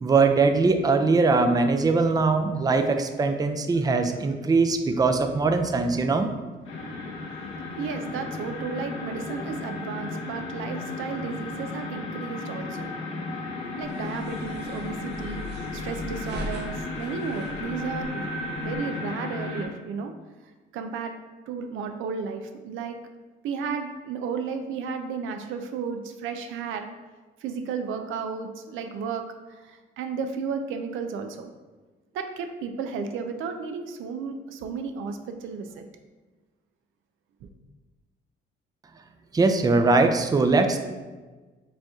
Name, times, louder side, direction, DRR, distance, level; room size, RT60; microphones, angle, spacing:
voice 1, 0.0-6.3 39.3-40.8, right 3 dB, 20° right, 6 dB, 0.4 m, -21 dB
sound 1, 6.6-19.6, left 2 dB, 85° left, 1.0 m, -34 dB
voice 2, 7.8-12.9 13.8-20.1 20.7-21.1 21.5-23.0 23.4-26.9 27.4-31.5 32.1-35.8 37.4-37.5, right 5 dB, 85° right, 6 dB, 0.5 m, -33 dB
sound 2, 13.8-18.8, left 1 dB, 60° right, 0.8 m, -40 dB
5.1 x 2.9 x 3.6 m, 1.3 s
cardioid pair, 90°, 20 cm